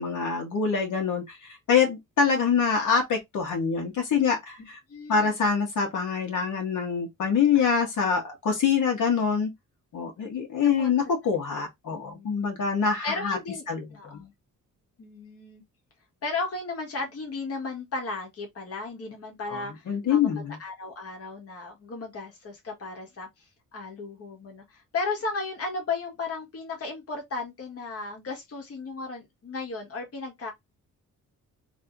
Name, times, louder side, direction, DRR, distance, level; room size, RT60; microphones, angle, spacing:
voice 1, 0.0-4.8 5.1-9.5 9.9-13.4 13.7-13.9 14.1-14.2 19.5-20.6, left 6 dB, 65° left, 1.6 m, -25 dB
voice 2, 4.9-5.3 7.5-7.7 10.6-11.0 11.9-12.5 13.0-14.3 15.0-15.6 16.2-20.3 20.6-30.5, left 3 dB, 45° left, 1.6 m, -35 dB
3.3 x 3.2 x 3.9 m
wide cardioid pair, 170°, 33 cm